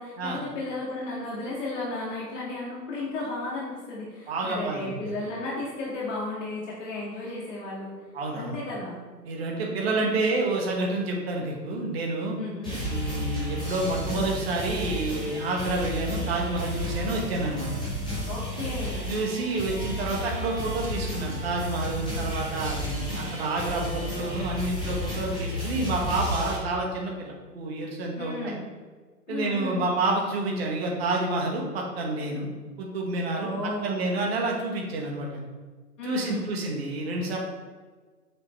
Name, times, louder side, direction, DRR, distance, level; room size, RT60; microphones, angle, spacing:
voice 1, 0.0-8.0 8.3-9.0 12.4-12.8 18.3-19.1 28.2-28.6 29.3-29.9 33.3-34.1 36.0-36.5, left 2 dB, 45° left, -5 dB, 2.6 m, -34 dB
voice 2, 4.3-4.9 8.1-8.5 9.3-12.4 12.9-17.7 19.1-28.5 29.3-32.5 32.8-33.5 33.8-35.4 36.0-37.4, right 2 dB, 40° right, -1 dB, 1.9 m, -29 dB
sound 1, 12.6-26.6, left 1 dB, 5° left, 0.5 m, -32 dB
8.5 x 5.7 x 4.7 m, 1.4 s
hypercardioid pair, 145°, 49 cm